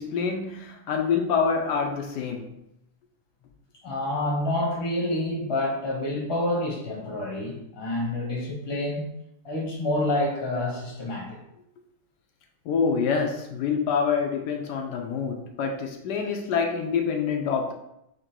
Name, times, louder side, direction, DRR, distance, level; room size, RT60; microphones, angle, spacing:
voice 1, 0.0-2.6 12.6-17.7, left 6 dB, 75° left, 3 dB, 1.2 m, -26 dB
voice 2, 3.8-9.1 9.4-11.4, left 1 dB, 20° left, -2 dB, 0.9 m, -28 dB
3.9 x 3.0 x 4.4 m, 0.82 s
omnidirectional pair, 1.9 m